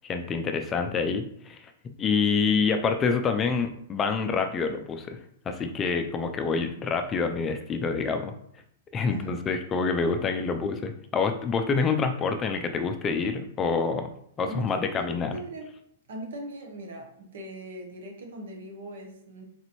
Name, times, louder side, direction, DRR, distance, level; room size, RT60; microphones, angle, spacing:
voice 1, 0.0-1.6 2.0-5.2 5.5-8.3 8.9-14.1 14.4-15.4, left 5 dB, 20° left, 7 dB, 0.3 m, -27 dB
voice 2, 9.1-9.5 14.5-15.6 16.1-19.4, right 1 dB, 75° right, 2 dB, 1.1 m, -40 dB
4.0 x 2.6 x 3.0 m, 0.69 s
hypercardioid pair, 140°, 0 cm